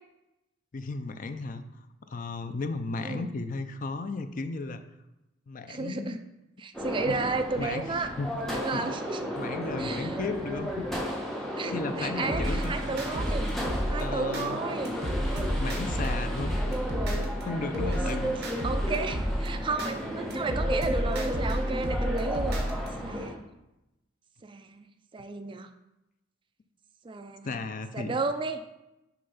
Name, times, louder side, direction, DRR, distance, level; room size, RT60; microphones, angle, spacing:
voice 1, 0.7-1.6 2.1-4.8 5.5-6.2 7.1-7.2 7.6-8.4 8.7-8.9 9.4-10.9 11.7-12.8 14.0-14.6 15.5-16.6 17.4-18.4 27.4-28.2, left 3 dB, 45° left, 9 dB, 0.4 m, -35 dB
voice 2, 5.7-6.2 6.6-8.1 8.4-9.3 9.8-10.2 11.6-13.5 13.8-15.0 17.9-18.3 18.6-23.4 24.4-25.7 27.0-27.5 27.9-28.6, right 3 dB, 25° right, 8 dB, 0.4 m, -33 dB
sound 1, 6.7-23.3, equal, ahead, 1.3 m, -34 dB
sound 2, 12.3-14.5 14.9-17.4 17.7-19.9 20.3-22.9, equal, 60° right, 1.4 m, -30 dB
6.6 x 3.4 x 5.5 m, 0.94 s
head